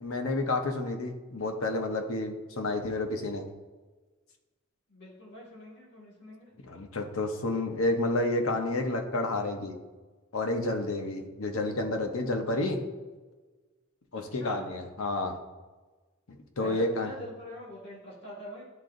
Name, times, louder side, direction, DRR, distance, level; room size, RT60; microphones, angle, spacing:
voice 1, 0.0-3.5 6.6-9.7 10.3-12.8 14.1-15.3 16.6-17.1, left 2 dB, 80° left, 4 dB, 0.8 m, -30 dB
voice 2, 4.9-6.5 14.3-14.7 16.6-18.6, equal, 55° left, -6 dB, 1.9 m, -43 dB
11.0 x 3.7 x 2.6 m, 1.3 s
head